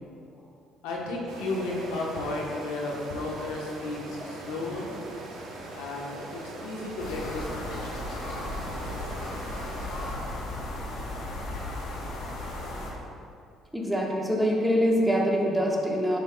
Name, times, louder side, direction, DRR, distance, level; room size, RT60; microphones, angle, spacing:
voice 1, 0.8-4.9 5.7-7.9, left 2 dB, 85° left, -2 dB, 1.0 m, -33 dB
sound 1, 1.3-10.2, right 2 dB, 75° right, 1.1 m, -41 dB
sound 2, 7.0-12.9, left 1 dB, 70° left, 1.3 m, -35 dB
voice 2, 13.7-16.2, equal, 5° right, -2 dB, 1.3 m, -24 dB
11.0 x 5.2 x 2.3 m, 2.5 s
supercardioid pair, 75°, 0 cm